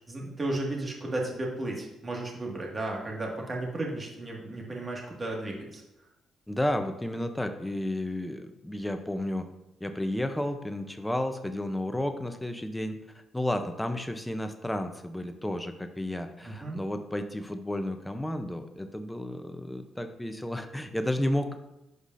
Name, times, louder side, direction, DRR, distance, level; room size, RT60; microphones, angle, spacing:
voice 1, 0.1-5.8 16.4-16.8, right 2 dB, 30° right, -1 dB, 1.8 m, -34 dB
voice 2, 6.5-9.5 9.8-21.6, left 1 dB, 5° left, 7 dB, 0.6 m, -32 dB
11.0 x 4.9 x 2.6 m, 0.90 s
cardioid pair, 90°, 0 cm